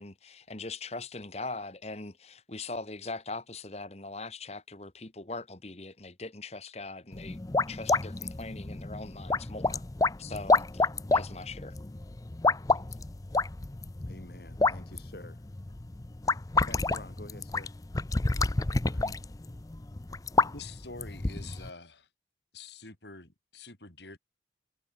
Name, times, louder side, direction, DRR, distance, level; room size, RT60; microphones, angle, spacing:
voice 1, 0.0-7.4 7.7-9.8 10.2-11.8, left 3 dB, 35° left, 1.5 m, -41 dB
sound 1, 7.1-21.7, left 3 dB, 20° left, 0.5 m, -29 dB
voice 2, 14.1-15.4 16.6-17.7, left 1 dB, 60° left, 4.3 m, -48 dB
voice 3, 18.9-19.2 20.5-22.1 22.5-24.2, left 3 dB, 75° left, 5.3 m, -47 dB
head